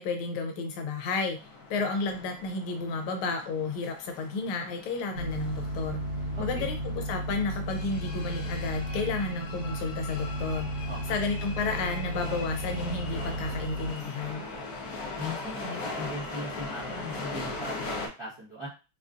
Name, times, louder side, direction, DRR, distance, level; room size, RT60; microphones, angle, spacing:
voice 1, 0.0-1.4 1.7-6.0 6.4-10.7 11.1-14.4, left 4 dB, 85° left, 5 dB, 1.4 m, -32 dB
sound 1, 1.3-18.1, left 3 dB, 65° left, 0.9 m, -40 dB
sound 2, 5.1-13.9, right 1 dB, 85° right, 1.9 m, -34 dB
voice 2, 6.3-6.7 10.9-11.1 15.2-18.7, left 1 dB, 30° right, -8 dB, 0.5 m, -39 dB
4.2 x 2.4 x 2.4 m, 0.32 s
omnidirectional pair, 2.3 m